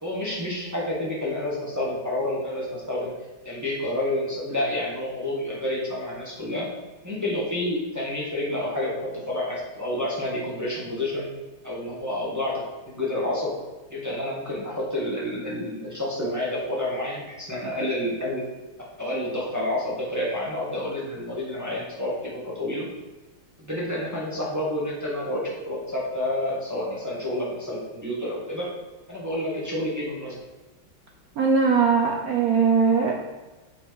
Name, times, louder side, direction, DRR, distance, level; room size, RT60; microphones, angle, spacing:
voice 1, 0.0-3.1 3.4-6.7 7.0-11.3 11.6-13.5 13.9-18.4 19.0-22.9 23.6-28.7 29.1-30.4, left 1 dB, 10° right, -6 dB, 1.4 m, -29 dB
voice 2, 31.4-33.1, right 5 dB, 70° right, 1 dB, 0.8 m, -20 dB
7.1 x 5.5 x 4.7 m, 1.1 s
omnidirectional pair, 2.3 m